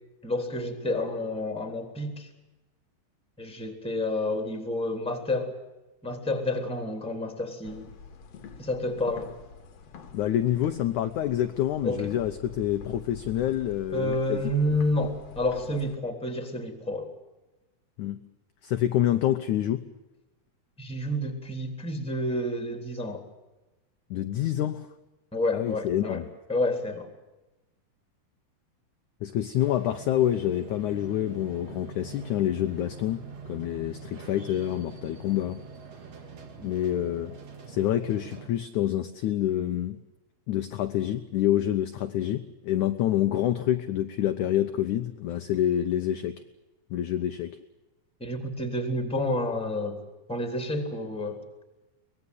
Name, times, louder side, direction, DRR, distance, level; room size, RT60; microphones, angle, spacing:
voice 1, 0.2-2.3 3.4-5.6 6.0-7.9 8.6-9.3 11.8-12.1 13.9-17.1 20.8-23.2 25.3-26.2 26.5-27.1 36.6-36.7 48.2-50.0 50.3-51.4, left 1 dB, ahead, 5 dB, 2.8 m, -29 dB
sound 1, 7.6-16.0, left 5 dB, 50° left, 2.3 m, -46 dB
voice 2, 10.1-14.4 18.0-18.2 18.6-19.9 24.1-24.9 25.5-26.3 29.2-35.6 36.6-37.3 37.7-40.0 40.5-46.4 46.9-47.6, left 12 dB, 70° left, 8 dB, 1.9 m, -27 dB
sound 2, 29.5-38.5, right 5 dB, 45° right, 2.9 m, -44 dB
24.0 x 20.0 x 8.0 m, 1.0 s
omnidirectional pair, 4.4 m